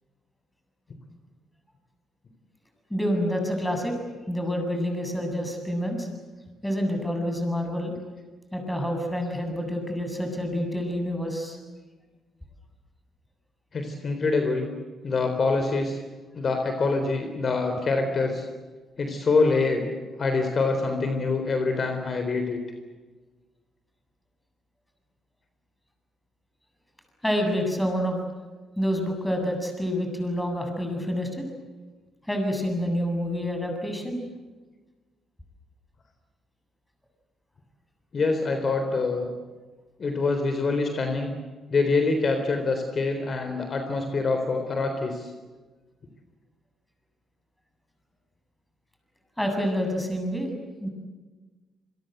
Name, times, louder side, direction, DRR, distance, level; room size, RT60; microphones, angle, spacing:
voice 1, 2.9-3.9 4.3-6.1 6.6-7.9 8.5-11.6 27.2-28.2 28.8-31.3 32.3-34.2 49.4-50.5 50.8-50.9, equal, 5° left, 4 dB, 7.7 m, -27 dB
voice 2, 13.7-14.7 15.0-16.0 16.3-18.5 19.0-19.9 20.2-22.6 38.1-39.3 40.0-41.3 41.7-45.3, left 3 dB, 45° left, 6 dB, 3.8 m, -25 dB
28.0 x 23.0 x 8.1 m, 1.3 s
cardioid pair, 90°, 0 cm